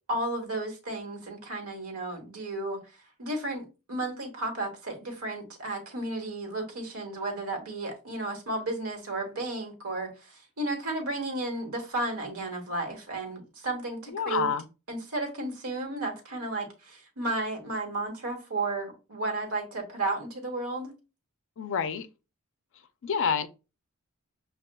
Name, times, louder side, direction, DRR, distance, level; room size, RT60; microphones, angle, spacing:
voice 1, 0.1-2.8 3.2-14.5 14.9-20.9, right 2 dB, 85° right, 1.2 m, -33 dB
voice 2, 14.1-14.6 21.6-22.1 23.0-23.5, left 7 dB, 60° left, 0.4 m, -28 dB
6.3 x 2.3 x 2.2 m
head